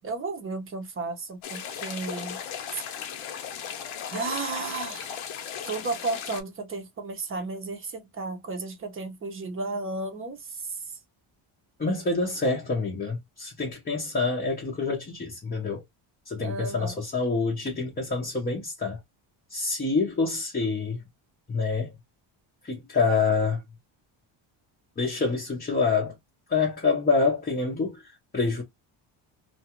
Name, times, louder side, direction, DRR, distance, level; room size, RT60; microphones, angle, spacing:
voice 1, 0.0-2.4 2.7-2.8 4.1-5.1 5.6-10.8 16.4-16.9, right 3 dB, 25° right, 0.7 m, -33 dB
sound 1, 1.4-6.4, left 8 dB, 85° left, 0.9 m, -36 dB
voice 2, 11.8-15.8 16.3-19.0 19.5-21.0 21.5-22.0 22.6-23.6 25.0-26.2 26.5-28.6, left 4 dB, 20° left, 0.6 m, -27 dB
2.4 x 2.3 x 2.8 m
cardioid pair, 155°, 47 cm